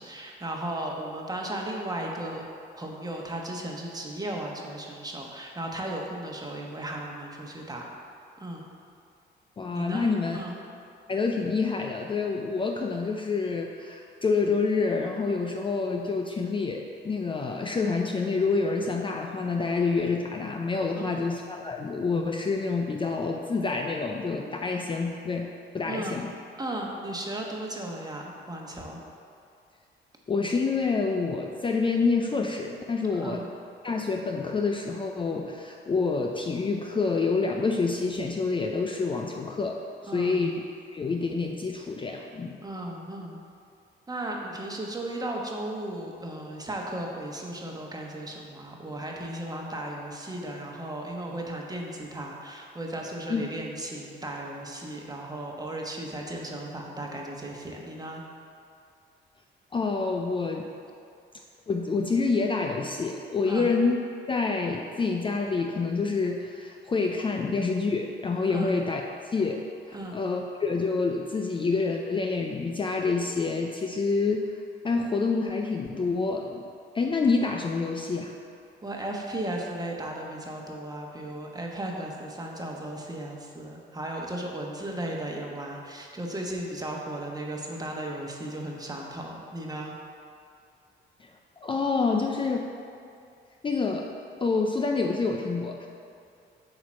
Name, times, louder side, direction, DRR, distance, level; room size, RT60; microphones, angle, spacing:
voice 1, 0.0-2.4 2.8-7.9 8.4-8.6 9.7-10.5 21.0-21.2 25.9-26.1 26.6-29.0 33.1-33.5 40.1-40.4 42.6-43.4 44.1-58.2 63.5-63.7 68.5-68.8 69.9-70.2 78.8-90.0, right 1 dB, 20° right, -1 dB, 1.1 m, -35 dB
voice 2, 9.6-10.4 11.1-26.3 30.3-33.4 33.8-40.6 40.9-42.6 53.3-53.5 59.7-60.7 61.7-64.0 64.3-74.5 74.8-76.7 76.9-78.3 91.2-91.3 91.6-92.7 93.6-94.1 94.4-95.9, left 4 dB, 25° left, 2 dB, 0.4 m, -27 dB
8.4 x 2.9 x 6.2 m, 2.4 s
cardioid pair, 90°, 20 cm